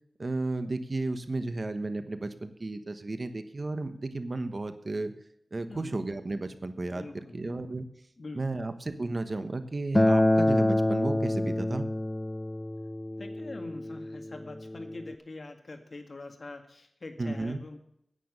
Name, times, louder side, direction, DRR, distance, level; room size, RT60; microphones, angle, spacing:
voice 1, 0.2-5.1 5.5-7.1 7.3-7.9 8.3-11.9 17.2-17.6, right 2 dB, 50° right, 9 dB, 1.1 m, -33 dB
voice 2, 6.9-7.7 8.2-8.6 13.2-17.8, left 2 dB, 60° left, 5 dB, 1.9 m, -44 dB
Acoustic guitar, 9.9-15.1, left 1 dB, 20° left, 0.4 m, -27 dB
10.0 x 9.4 x 6.7 m, 0.73 s
wide cardioid pair, 65°, 0 cm